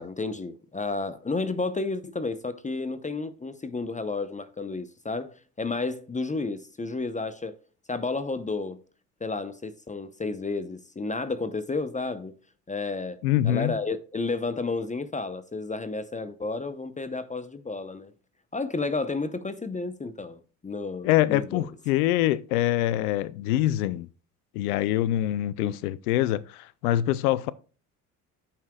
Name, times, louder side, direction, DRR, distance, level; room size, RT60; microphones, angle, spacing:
voice 1, 0.0-7.5 7.9-8.8 9.2-12.3 12.7-18.1 18.5-21.7 25.6-25.8, left 3 dB, 15° left, 0.8 m, -32 dB
voice 2, 13.2-13.8 21.0-24.1 24.5-27.5, left 13 dB, 80° left, 0.6 m, -24 dB
13.5 x 5.8 x 2.3 m
hypercardioid pair, 65°, 44 cm